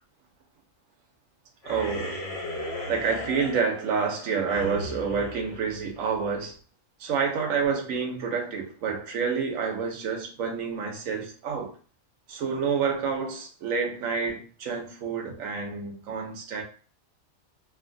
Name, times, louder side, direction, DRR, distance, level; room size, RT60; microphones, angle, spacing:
sound 1, 1.6-6.4, left 1 dB, 45° left, 0.4 m, -37 dB
voice 1, 1.6-2.2 2.9-6.5 7.0-11.7 12.3-16.6, right 5 dB, 65° right, 1.1 m, -28 dB
2.9 x 2.1 x 2.6 m
omnidirectional pair, 1.5 m